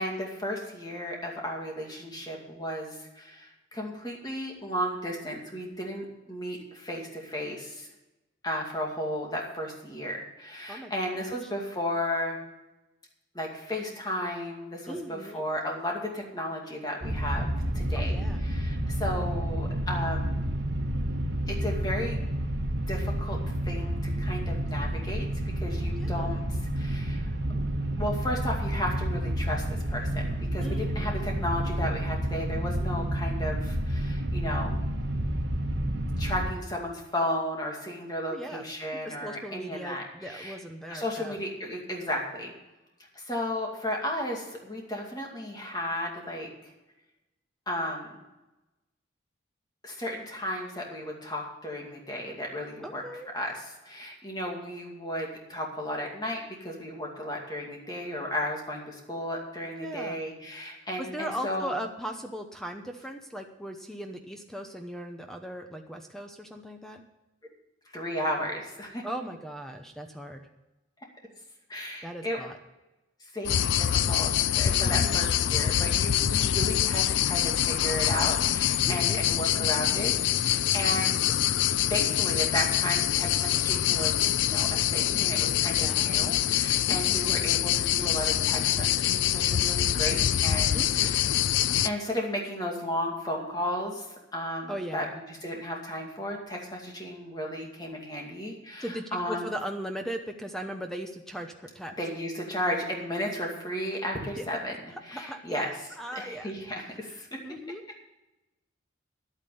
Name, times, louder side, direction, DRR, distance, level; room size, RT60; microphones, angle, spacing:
voice 1, 0.0-7.9 8.4-12.4 13.3-20.5 21.5-22.2 22.9-23.4 23.6-25.3 25.5-27.3 28.0-34.9 36.2-40.6 40.9-42.5 43.1-46.7 47.7-48.2 49.8-53.0 53.3-61.8 67.9-69.0 71.7-72.4 73.2-74.3 74.6-81.2 81.9-91.2 91.8-94.1 94.3-99.5 102.0-105.7 106.1-107.4, left 1 dB, 20° left, 0 dB, 2.3 m, -34 dB
voice 2, 14.9-15.4 18.0-18.4 26.0-26.4 30.6-31.2 38.3-38.6 39.0-41.4 52.8-53.3 59.8-60.2 61.0-67.0 69.0-70.4 72.0-72.6 74.8-75.2 78.8-79.2 85.7-86.3 86.8-87.2 90.7-91.1 94.7-95.1 98.8-101.9 104.4-104.6 105.1-106.5 107.4-107.8, equal, ahead, 4 dB, 0.8 m, -38 dB
sound 1, 17.0-36.5, right 1 dB, 60° right, 1.8 m, -30 dB
sound 2, 73.5-91.9, left 11 dB, 70° left, 0.4 m, -25 dB
11.0 x 8.9 x 6.9 m, 1.0 s
head